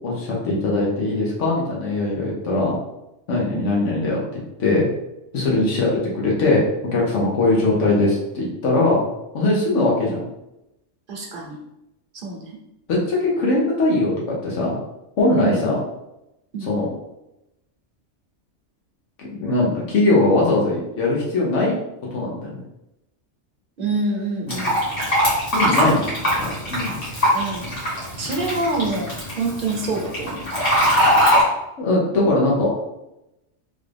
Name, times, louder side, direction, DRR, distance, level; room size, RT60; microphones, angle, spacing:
voice 1, 0.0-2.8 3.3-4.2 4.6-4.9 5.3-5.9 6.1-6.6 6.9-9.0 9.3-10.2 12.9-14.1 14.4-14.7 15.2-15.8 16.7-16.9 19.4-21.7 22.1-22.5 24.5-24.6 25.5-26.0 26.3-26.9 31.8-32.7, left 2 dB, 85° left, -4 dB, 1.2 m, -20 dB
voice 2, 11.1-11.6 12.1-12.6 15.4-15.6 16.5-16.7 23.8-24.8 25.6-26.1 27.3-27.7 28.2-30.4, right 3 dB, 50° right, -1 dB, 0.9 m, -27 dB
Fill (with liquid), 24.5-31.4, equal, 50° left, 1.7 m, -21 dB
3.8 x 2.4 x 3.3 m, 0.90 s
omnidirectional pair, 1.2 m